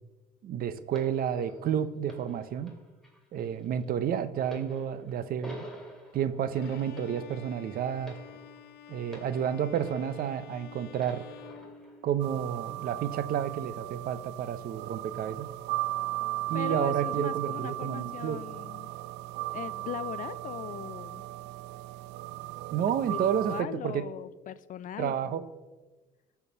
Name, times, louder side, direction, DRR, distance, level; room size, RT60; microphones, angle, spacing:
voice 1, 0.4-2.7 3.3-5.6 6.1-8.2 8.9-11.3 12.0-15.5 16.5-18.4 22.7-24.0 25.0-25.4, right 9 dB, 60° right, 13 dB, 0.7 m, -30 dB
sound 1, 0.9-10.6 11.0-12.0 12.8-13.0, equal, ahead, 2.5 m, -49 dB
Bowed string instrument, 6.6-12.5, left 7 dB, 70° left, 0.8 m, -50 dB
sound 2, 12.2-23.6, right 17 dB, 90° right, 0.4 m, -36 dB
voice 2, 16.5-18.9 19.5-21.2 23.1-25.4, left 11 dB, 50° left, 15 dB, 0.4 m, -40 dB
12.5 x 4.7 x 6.8 m, 1.2 s
cardioid pair, 110°, 17 cm